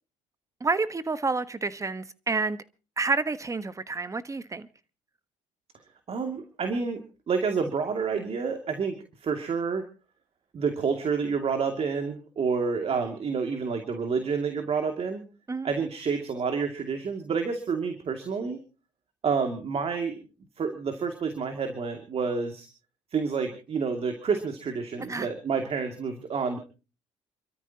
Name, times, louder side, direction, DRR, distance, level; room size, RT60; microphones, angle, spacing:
voice 1, 0.6-2.6 3.0-4.7 15.5-15.7 25.1-25.3, right 3 dB, 20° right, 1.3 m, -29 dB
voice 2, 6.1-7.0 7.3-9.8 10.5-15.2 15.6-18.6 19.2-20.2 20.6-22.7 23.1-26.6, right 5 dB, 45° right, 2.5 m, -29 dB
29.0 x 13.5 x 2.9 m
supercardioid pair, 70°, 14 cm